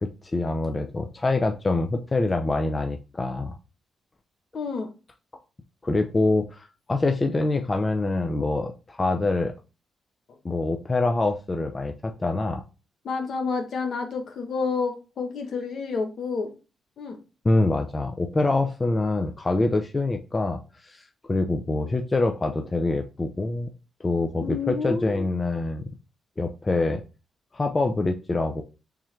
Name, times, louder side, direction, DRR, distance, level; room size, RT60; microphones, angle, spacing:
voice 1, 0.0-3.6 5.8-9.5 10.4-12.6 17.4-23.7 24.0-25.9 26.4-27.0 27.5-28.6, left 2 dB, 30° left, 5 dB, 0.5 m, -25 dB
voice 2, 4.5-4.9 13.0-16.5 17.0-17.2 24.4-25.3, left 4 dB, 65° left, 4 dB, 1.0 m, -29 dB
3.5 x 3.1 x 3.2 m, 0.31 s
supercardioid pair, 60°, 0 cm